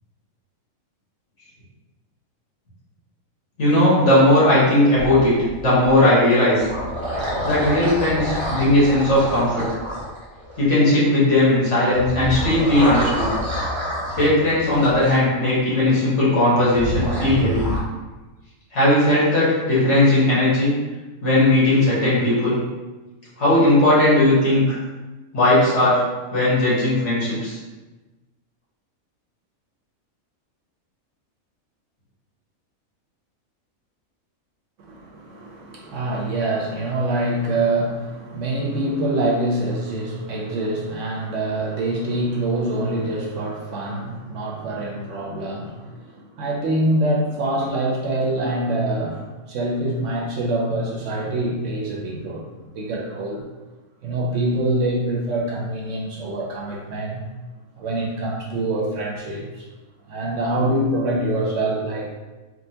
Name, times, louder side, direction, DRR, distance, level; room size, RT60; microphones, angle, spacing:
voice 1, 3.6-5.4 5.6-6.7 7.4-9.6 10.6-13.3 14.1-17.7 18.7-20.7 21.2-22.6 23.4-24.8 25.3-26.0 26.3-27.6, left 1 dB, 55° left, -8 dB, 1.4 m, -17 dB
sound 1, 4.9-5.9 6.4-10.7 11.9-15.1 16.7-17.8, equal, 25° right, 0.8 m, -28 dB
voice 2, 34.8-52.4 52.7-53.4 54.0-57.2 57.8-59.7 60.1-62.1, right 1 dB, 70° right, -2 dB, 0.9 m, -25 dB
3.7 x 2.1 x 2.7 m, 1.2 s
omnidirectional pair, 1.4 m